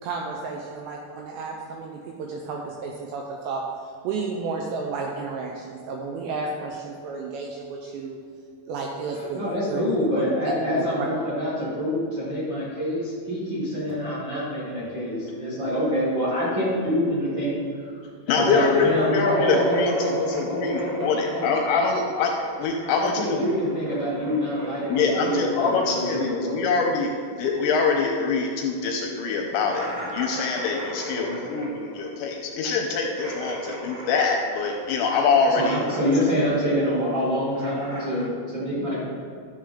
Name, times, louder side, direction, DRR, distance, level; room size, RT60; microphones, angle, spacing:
voice 1, 0.0-8.2 8.7-9.4 9.7-9.8 10.2-10.3 10.7-11.1, right 4 dB, 80° right, 0 dB, 2.5 m, -32 dB
voice 2, 9.3-17.6 18.3-21.8 22.8-26.6 31.1-31.4 35.5-39.0, equal, 40° right, -9 dB, 1.8 m, -26 dB
voice 3, 18.0-22.3 22.6-23.5 24.9-36.0 36.4-36.7, left 4 dB, 80° left, 1 dB, 2.8 m, -24 dB
sound 1, 18.5-22.8 23.0-28.1 28.3-28.4 28.8-28.9 29.7-35.3 35.5-36.5 36.8-38.2, right 1 dB, 65° right, 3.2 m, -38 dB
12.0 x 6.9 x 3.7 m, 2.2 s
omnidirectional pair, 5.7 m